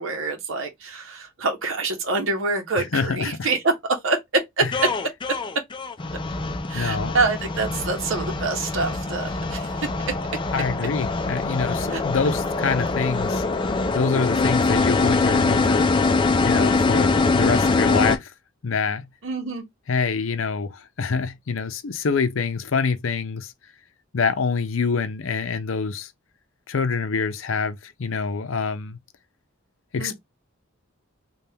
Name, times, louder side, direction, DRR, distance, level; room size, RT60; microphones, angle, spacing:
voice 1, 0.0-4.6 6.7-9.9 11.9-12.0 19.2-19.6 30.0-30.2, right 3 dB, 70° right, 0.8 m, -26 dB
voice 2, 2.9-3.5 6.7-7.2 10.5-13.4 13.9-15.9 16.4-18.3 18.6-19.0 19.9-23.5 24.1-26.1 26.7-29.0 29.9-30.2, left 5 dB, 70° left, 0.6 m, -26 dB
sound 1, 4.7-18.2, left 3 dB, 25° left, 0.4 m, -23 dB
3.4 x 2.3 x 2.7 m
head